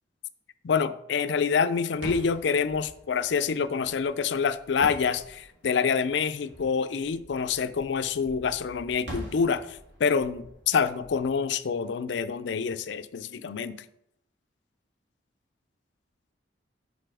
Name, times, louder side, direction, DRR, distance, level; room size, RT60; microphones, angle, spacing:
voice 1, 0.6-13.8, left 6 dB, 70° left, 0.4 m, -27 dB
sound 1, 1.9-12.5, right 1 dB, 80° right, 2.7 m, -45 dB
6.8 x 4.1 x 4.7 m
head